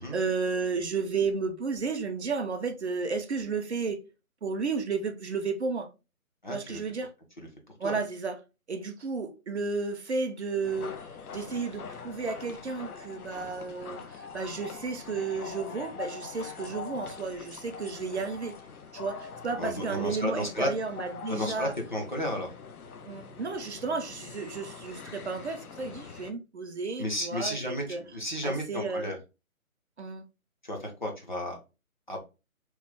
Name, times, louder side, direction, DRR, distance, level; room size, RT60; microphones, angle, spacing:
voice 1, 0.0-4.0 4.4-5.9 6.5-7.1 7.8-8.4 8.7-10.9 11.3-18.6 18.9-21.7 23.1-27.6 27.9-28.0 28.4-29.1 30.0-30.2, right 4 dB, 50° right, 0.5 m, -32 dB
voice 2, 6.4-6.8 7.4-7.5 7.8-8.0 19.5-20.7 21.3-22.5 27.0-29.2 30.7-31.6 32.1-32.2, left 1 dB, 35° left, 0.5 m, -33 dB
sound 1, 10.6-26.3, left 6 dB, 85° left, 0.6 m, -43 dB
3.0 x 2.0 x 3.2 m
figure-of-eight pair, 155°, 43 cm